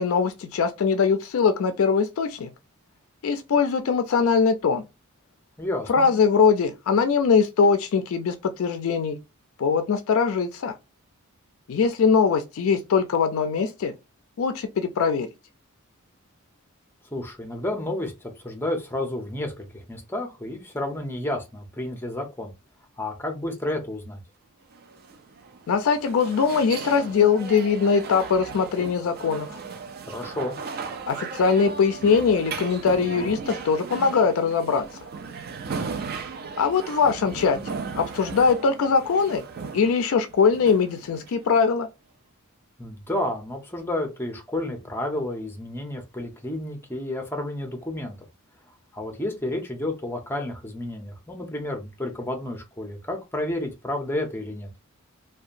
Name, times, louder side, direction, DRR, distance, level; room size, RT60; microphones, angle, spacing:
voice 1, 0.0-2.5 3.2-4.8 5.9-9.2 9.6-10.7 11.7-13.9 14.4-15.3 25.7-29.5 31.1-34.8 36.6-39.4 39.7-41.9, left 5 dB, 65° left, 0.4 m, -22 dB
voice 2, 5.6-6.1 17.1-22.5 23.0-24.2 30.1-30.6 42.8-48.1 48.9-54.7, left 1 dB, 10° left, 0.6 m, -31 dB
sound 1, 24.7-41.7, right 5 dB, 45° right, 0.4 m, -37 dB
2.8 x 2.2 x 2.4 m
head